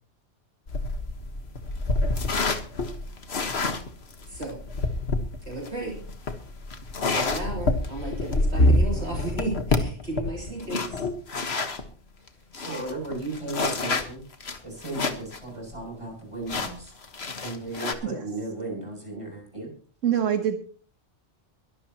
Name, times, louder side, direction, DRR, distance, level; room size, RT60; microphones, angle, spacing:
sound 1, 0.7-11.9 12.3-12.4 12.5-15.4 15.7-15.8 16.5-17.9, left 2 dB, 55° left, 1.7 m, -27 dB
voice 1, 4.2-4.6 5.5-6.0 7.1-11.0, right 2 dB, 60° right, -2 dB, 3.5 m, -34 dB
voice 2, 12.5-14.2 14.6-16.9 17.4-19.7, right 2 dB, 25° right, -1 dB, 8.2 m, -35 dB
voice 3, 20.0-20.6, right 9 dB, 85° right, 6 dB, 1.6 m, -24 dB
23.0 x 12.0 x 3.0 m, 0.42 s
omnidirectional pair, 1.3 m